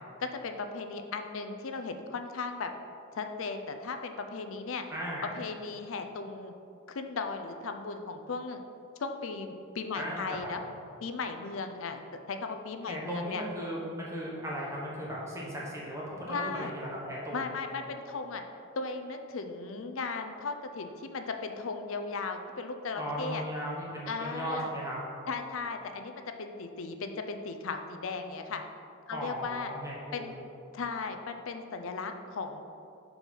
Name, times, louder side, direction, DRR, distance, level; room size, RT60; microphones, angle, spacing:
voice 1, 0.2-2.7 3.1-4.8 5.2-6.5 6.9-8.6 9.0-10.6 11.0-13.4 16.3-16.7 17.3-18.4 18.8-23.4 24.1-24.7 25.3-26.1 26.4-28.6 29.1-29.7 30.1-30.3 30.7-32.6, left 4 dB, 65° left, 6 dB, 0.5 m, -36 dB
voice 2, 4.9-5.3 9.9-10.5 12.9-17.4 23.0-25.0 29.1-30.4, equal, 15° right, -5 dB, 1.1 m, -37 dB
5.3 x 4.6 x 5.5 m, 2.6 s
head